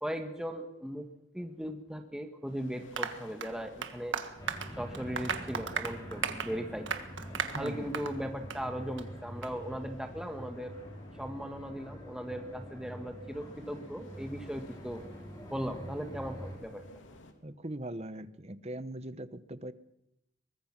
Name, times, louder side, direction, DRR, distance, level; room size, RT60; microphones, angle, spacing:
voice 1, 0.0-1.0 1.3-4.2 4.8-6.9 7.6-10.8 11.2-15.0 15.5-16.8, equal, 5° right, 4 dB, 1.5 m, -38 dB
sound 1, 2.5-17.3, left 1 dB, 85° left, 2.9 m, -55 dB
Applause, 3.0-8.2 8.5-8.6 9.0-9.1 9.4-9.5, right 6 dB, 80° right, 1.7 m, -36 dB
sound 2, 4.4-16.6, equal, 20° left, 6.4 m, -46 dB
voice 2, 7.5-8.0 17.4-19.7, right 1 dB, 35° right, 14 dB, 0.9 m, -40 dB
23.5 x 20.0 x 6.0 m, 0.83 s
head